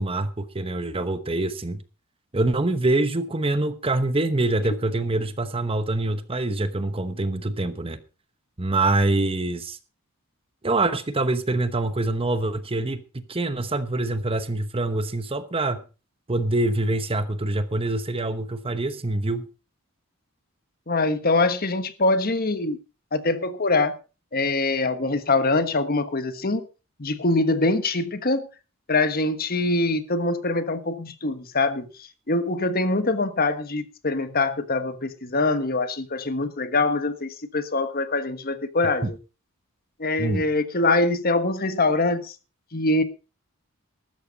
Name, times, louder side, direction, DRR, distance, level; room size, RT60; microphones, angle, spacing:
voice 1, 0.0-1.8 2.3-8.0 8.6-9.8 10.6-15.8 16.3-19.5 39.0-39.1 40.2-40.5, right 2 dB, 25° right, 1.0 m, -25 dB
voice 2, 20.9-22.8 23.1-23.9 24.3-26.6 27.0-28.5 28.9-39.2 40.0-42.3 42.7-43.0, left 2 dB, 45° left, 1.3 m, -24 dB
14.0 x 13.0 x 4.0 m
head